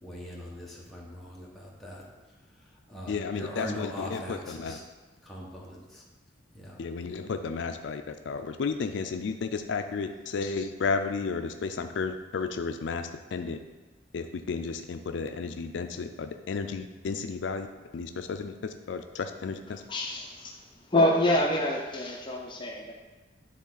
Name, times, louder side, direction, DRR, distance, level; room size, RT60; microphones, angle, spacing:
voice 1, 0.0-2.0 2.9-4.8 5.2-6.0 6.5-6.8, equal, ahead, -6 dB, 1.3 m, -41 dB
voice 2, 3.1-4.8 6.8-13.6 14.1-17.7 17.9-19.8, left 4 dB, 70° left, 7 dB, 0.4 m, -33 dB
voice 3, 19.9-20.5 20.9-22.9, left 1 dB, 25° left, -1 dB, 0.7 m, -26 dB
9.9 x 3.6 x 3.9 m, 1.3 s
head